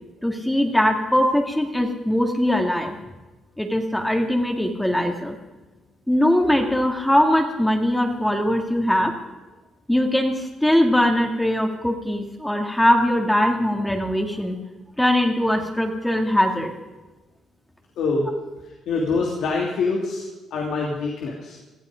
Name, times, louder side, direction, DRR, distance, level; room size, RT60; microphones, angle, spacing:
voice 1, 0.2-3.0 3.6-5.4 6.1-9.1 9.9-14.6 15.0-16.7, left 1 dB, 5° left, 2 dB, 2.1 m, -21 dB
voice 2, 18.0-18.3 18.9-20.3 20.5-21.6, left 4 dB, 75° left, -2 dB, 2.9 m, -24 dB
19.5 x 13.0 x 5.1 m, 1.1 s
cardioid pair, 90°, 0 cm